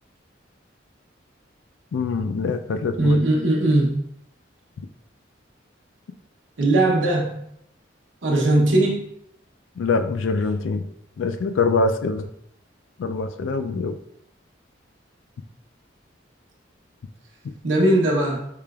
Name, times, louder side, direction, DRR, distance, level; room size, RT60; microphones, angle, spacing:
voice 1, 1.9-3.2 9.8-10.9 11.2-12.3 13.0-14.0, left 4 dB, 85° left, 8 dB, 0.4 m, -24 dB
voice 2, 3.0-3.9 6.6-7.4 8.2-9.1 17.6-18.4, right 1 dB, 80° right, -2 dB, 0.8 m, -19 dB
4.9 x 2.9 x 2.3 m, 0.74 s
head